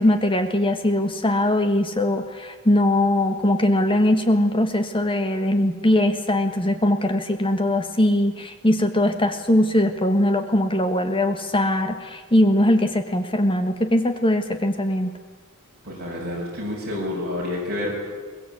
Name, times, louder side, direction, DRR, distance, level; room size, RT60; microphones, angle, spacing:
voice 1, 0.0-15.2, left 1 dB, 25° left, 7 dB, 1.6 m, -21 dB
voice 2, 15.8-17.9, left 1 dB, 45° right, -4 dB, 7.1 m, -29 dB
22.0 x 20.5 x 8.6 m, 1.4 s
head